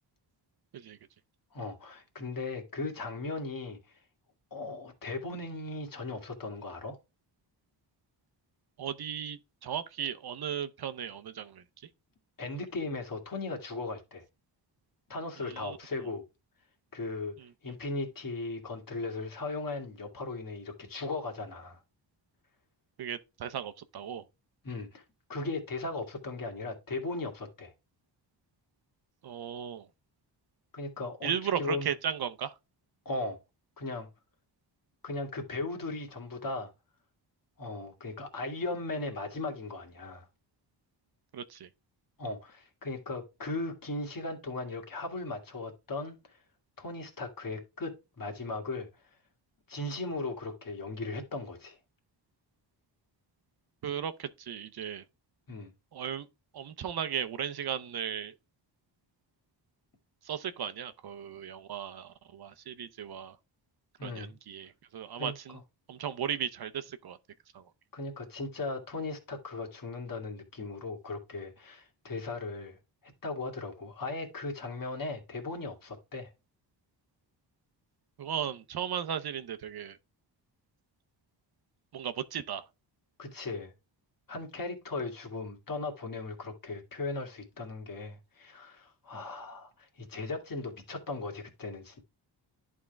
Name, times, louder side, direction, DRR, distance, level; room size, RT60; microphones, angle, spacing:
voice 1, 1.5-3.8 4.5-7.0 12.4-14.2 15.1-16.3 16.9-17.3 17.6-21.8 24.6-25.0 25.3-27.7 30.7-31.9 33.1-33.4 33.8-34.1 35.0-36.7 37.6-40.3 42.2-46.2 46.8-48.9 49.7-51.8 55.5-55.7 64.0-64.4 65.2-65.6 67.9-72.8 73.2-76.3 83.2-83.7 84.3-92.0, left 3 dB, 50° left, 2.0 m, -37 dB
voice 2, 8.8-11.6 15.4-15.8 23.0-24.2 29.2-29.9 31.2-32.5 41.3-41.7 53.8-55.0 55.9-56.3 56.5-58.3 60.3-63.4 64.0-65.6 65.9-67.2 67.5-67.6 78.2-80.0 81.9-82.6, right 8 dB, 60° right, 0.7 m, -36 dB
11.0 x 3.7 x 3.3 m
cardioid pair, 90°, 44 cm